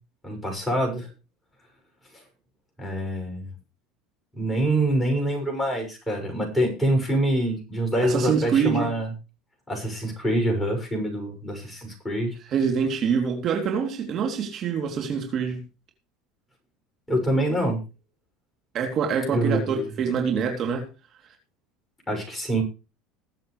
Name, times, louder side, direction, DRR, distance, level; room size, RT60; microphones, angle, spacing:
voice 1, 0.2-1.1 2.8-3.5 4.3-9.1 9.7-12.3 17.1-17.8 19.3-19.9 22.1-22.6, right 1 dB, 10° left, 6.6 m, -25 dB
voice 2, 8.0-9.0 12.5-15.6 18.7-20.9, right 6 dB, 45° right, 3.1 m, -25 dB
21.0 x 7.8 x 3.3 m
supercardioid pair, 95°, 0 cm